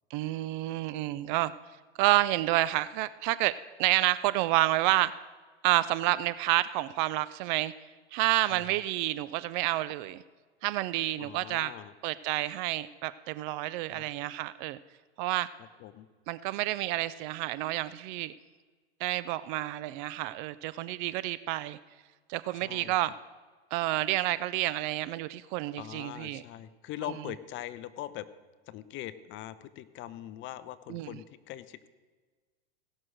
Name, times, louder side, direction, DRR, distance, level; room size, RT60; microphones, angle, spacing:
voice 1, 0.1-1.5 2.0-3.5 3.8-5.1 5.6-7.7 8.1-10.2 10.6-11.7 12.0-14.8 15.2-15.5 16.3-18.3 19.0-21.8 22.3-23.1 23.7-26.4 30.9-31.1, right 16 dB, 50° right, 16 dB, 0.5 m, -29 dB
voice 2, 8.5-8.8 11.2-11.9 13.9-14.1 15.6-16.1 22.5-22.9 25.8-28.3 28.7-31.9, left 13 dB, 35° left, 14 dB, 0.7 m, -42 dB
16.5 x 6.3 x 6.3 m, 1.4 s
hypercardioid pair, 110°, 32 cm